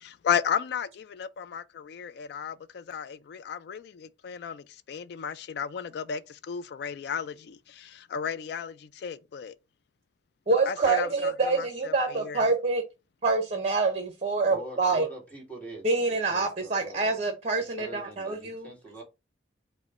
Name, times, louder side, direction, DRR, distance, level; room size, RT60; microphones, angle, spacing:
voice 1, 0.0-9.5 10.7-12.4, left 7 dB, 60° left, 0.3 m, -34 dB
voice 2, 10.5-12.8 13.2-15.1 15.8-18.7, right 3 dB, 35° right, 0.7 m, -26 dB
voice 3, 14.5-17.2 17.8-19.0, right 2 dB, 10° left, 1.7 m, -43 dB
5.0 x 2.1 x 4.8 m
head